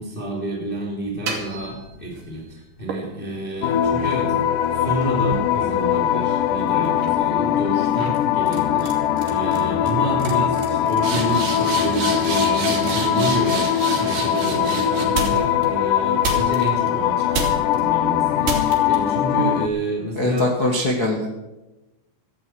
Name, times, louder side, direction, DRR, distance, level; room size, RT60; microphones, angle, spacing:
voice 1, 0.0-4.3 4.7-13.7 14.0-20.5, right 1 dB, 15° left, -3 dB, 3.1 m, -29 dB
sound 1, 1.0-2.3 2.9-6.5 6.8-7.2 8.0-8.2 8.5-8.9 9.2-9.6 9.9-10.0 10.2-15.6 16.2-16.9 17.3-17.8 18.4-19.0, right 4 dB, 85° right, 4.8 m, -30 dB
sound 2, 3.6-19.7, left 10 dB, 80° left, 1.9 m, -21 dB
voice 2, 20.2-21.3, left 2 dB, 45° left, 1 dB, 1.2 m, -22 dB
17.0 x 14.5 x 4.7 m, 1.0 s
omnidirectional pair, 4.4 m